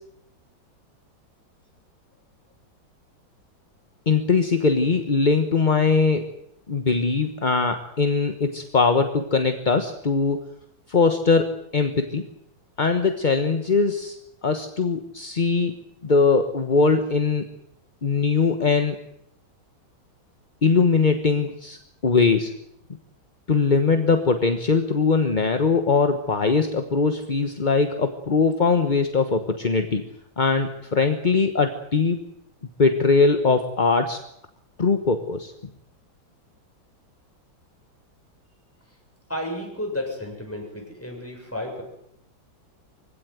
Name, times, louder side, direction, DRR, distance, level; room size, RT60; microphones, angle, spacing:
voice 1, 4.1-6.3 6.7-10.4 10.9-12.2 12.8-14.2 14.4-15.7 16.0-17.5 18.0-19.0 20.6-21.8 22.0-22.5 23.5-30.0 30.4-32.2 32.8-34.2 34.8-35.5, left 4 dB, 30° left, 7 dB, 1.1 m, -21 dB
voice 2, 39.3-41.8, left 1 dB, 5° left, 0 dB, 7.3 m, -32 dB
24.0 x 16.5 x 9.3 m, 0.76 s
omnidirectional pair, 2.1 m